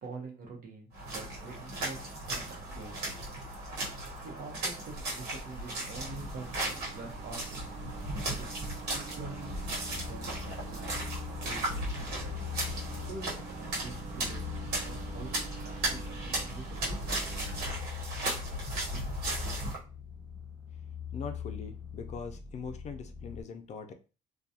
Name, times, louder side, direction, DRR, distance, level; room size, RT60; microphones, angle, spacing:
voice 1, 0.0-3.3 4.2-6.5 6.9-7.8 8.3-9.5 9.9-10.9 11.4-12.5 13.0-14.5 14.8-17.2, right 3 dB, 60° right, 2 dB, 0.9 m, -46 dB
sound 1, 0.9-19.8, right 1 dB, 75° right, 1.2 m, -36 dB
sound 2, 5.9-17.7, right 3 dB, 40° right, 0.5 m, -44 dB
sound 3, 9.2-23.4, left 8 dB, 5° right, 1.0 m, -43 dB
voice 2, 21.1-23.9, left 5 dB, 45° left, 7 dB, 0.4 m, -41 dB
2.3 x 2.3 x 2.7 m, 0.33 s
cardioid pair, 110°, 17 cm